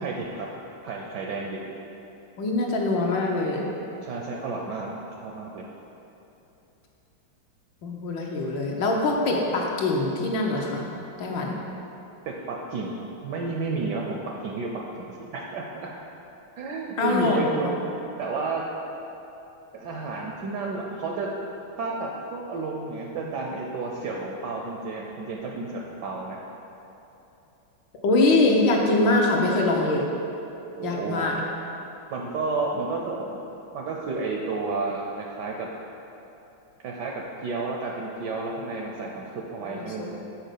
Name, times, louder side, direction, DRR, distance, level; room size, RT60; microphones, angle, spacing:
voice 1, 0.0-0.5 0.8-1.6 4.0-4.9 5.2-5.6 12.3-14.7 15.0-15.9 16.6-17.7 17.9-18.6 19.7-21.3 21.8-26.4 30.7-31.2 32.1-33.4 33.7-35.7 36.8-37.1 37.4-40.2, right 3 dB, 75° right, -1 dB, 1.0 m, -31 dB
voice 2, 2.4-3.6 7.8-10.8 11.2-11.5 17.0-17.6 28.0-30.0 30.8-31.4 39.7-40.1, left 2 dB, 70° left, -1 dB, 1.4 m, -23 dB
6.5 x 4.1 x 6.5 m, 2.9 s
omnidirectional pair, 2.3 m